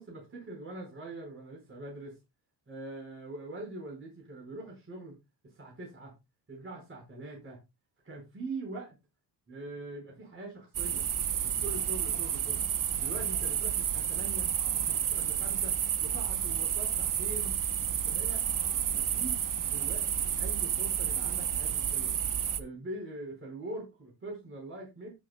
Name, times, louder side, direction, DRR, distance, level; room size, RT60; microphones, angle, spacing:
voice 1, 0.0-2.2 2.7-5.2 5.4-6.1 6.5-7.6 8.0-8.9 9.5-11.0 11.4-12.6 13.0-14.5 14.8-15.7 16.0-17.5 18.0-18.4 18.9-22.1 22.6-25.1, right 2 dB, 30° right, -1 dB, 4.7 m, -43 dB
sound 1, 10.7-22.6, right 9 dB, 50° right, 0.9 m, -30 dB
18.0 x 6.6 x 2.2 m, 0.24 s
cardioid pair, 120°, 42 cm